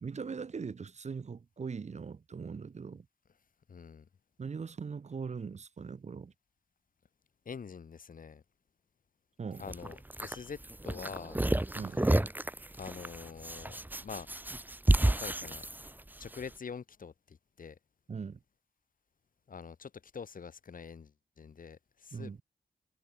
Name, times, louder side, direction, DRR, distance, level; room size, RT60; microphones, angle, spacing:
voice 1, 0.0-3.1 4.4-6.3 9.4-9.7 11.7-12.0 18.1-18.4 22.1-22.4, right 5 dB, 40° right, 0.6 m, -40 dB
voice 2, 3.7-4.1 7.5-8.4 9.6-11.4 12.8-13.8 14.0-14.3 15.0-15.6 16.2-17.8 19.5-22.4, left 6 dB, 55° left, 0.9 m, -45 dB
sound 1, 9.6-16.4, right 1 dB, 10° right, 1.0 m, -31 dB
cardioid pair, 70°, 17 cm